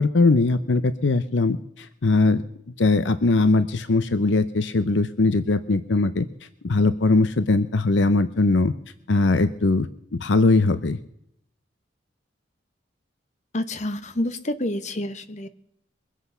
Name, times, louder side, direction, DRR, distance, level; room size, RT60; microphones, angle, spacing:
voice 1, 0.0-1.6 2.0-2.4 2.8-6.3 6.6-8.7 9.1-9.9 10.1-11.0, left 3 dB, 65° left, 13 dB, 0.6 m, -20 dB
voice 2, 13.5-15.5, left 1 dB, 40° left, 10 dB, 0.9 m, -28 dB
22.5 x 8.2 x 5.5 m, 0.74 s
head